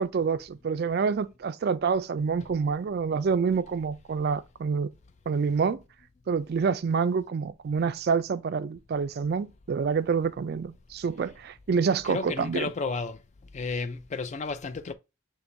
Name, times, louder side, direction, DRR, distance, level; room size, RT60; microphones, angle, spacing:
voice 1, 0.0-4.9 5.3-5.8 6.3-12.7, right 5 dB, 45° right, 0.3 m, -27 dB
voice 2, 12.0-13.2 13.5-14.9, left 4 dB, 30° left, 0.3 m, -32 dB
6.1 x 3.1 x 2.6 m
head